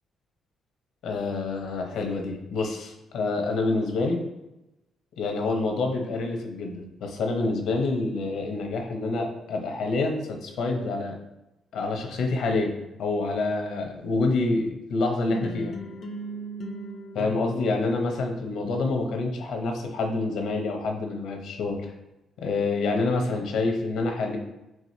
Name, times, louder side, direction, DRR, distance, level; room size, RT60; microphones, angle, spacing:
voice 1, 1.0-4.2 5.2-11.2 11.7-15.7 17.1-21.9 22.4-24.4, left 3 dB, 75° left, 3 dB, 0.8 m, -27 dB
sound 1, 15.3-19.2, equal, 50° left, 0.5 m, -38 dB
4.7 x 3.9 x 2.7 m, 0.97 s
cardioid pair, 90°, 0 cm